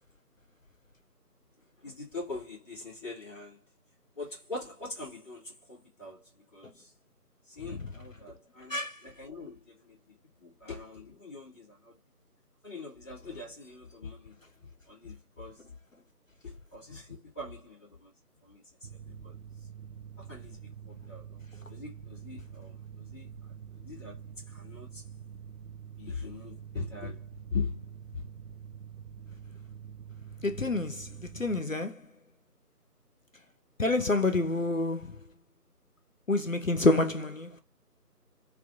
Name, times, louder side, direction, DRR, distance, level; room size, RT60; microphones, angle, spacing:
voice 1, 1.8-3.6 4.2-6.9 7.5-12.0 12.6-14.4 14.9-15.6 16.4-18.1 18.4-18.6 19.1-19.3 20.2-21.4 21.7-23.3 23.8-25.0 26.0-27.8 28.1-28.2, left 4 dB, 15° left, 1.7 m, -42 dB
Mechanical fan, 18.8-31.6, right 8 dB, 60° right, 0.6 m, -46 dB
voice 2, 30.4-32.0 33.8-35.1 36.3-37.6, left 2 dB, 55° left, 0.6 m, -28 dB
3.5 x 3.5 x 2.4 m
figure-of-eight pair, 165°, 48 cm